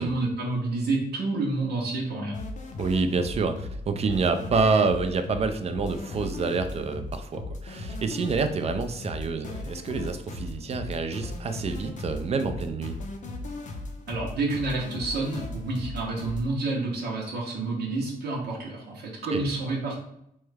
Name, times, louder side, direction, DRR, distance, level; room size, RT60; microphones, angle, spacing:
voice 1, 0.0-2.4 14.1-20.0, right 2 dB, 90° right, -3 dB, 0.8 m, -29 dB
sound 1, 2.3-16.4, left 2 dB, 50° left, 0.5 m, -37 dB
voice 2, 2.8-13.0 19.3-19.4, right 4 dB, 40° right, 8 dB, 0.4 m, -27 dB
3.1 x 2.3 x 3.2 m, 0.77 s
cardioid pair, 120°, 16 cm